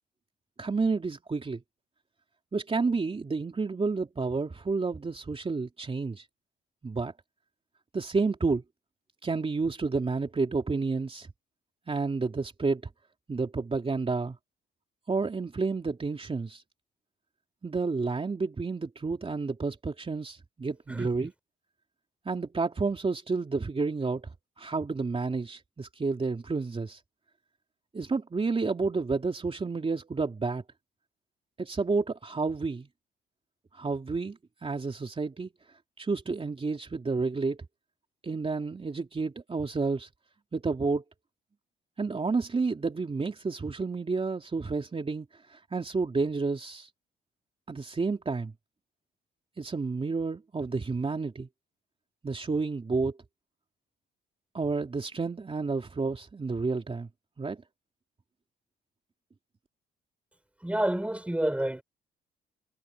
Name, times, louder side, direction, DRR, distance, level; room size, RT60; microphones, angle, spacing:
voice 1, 0.6-1.6 2.5-6.2 6.8-7.1 7.9-8.6 9.2-11.3 11.9-12.8 13.3-14.4 15.1-16.6 17.6-21.3 22.2-24.3 24.6-27.0 27.9-30.6 31.6-32.9 33.7-35.5 36.0-37.6 38.2-40.1 40.5-41.0 42.0-46.9 47.7-48.5 49.6-51.5 52.2-53.2 54.5-57.1 57.4-57.6, right 4 dB, 30° right, 3.5 m, -30 dB
voice 2, 20.9-21.3 60.6-61.8, right 1 dB, 5° right, 4.6 m, -29 dB
cardioid pair, 90°, 20 cm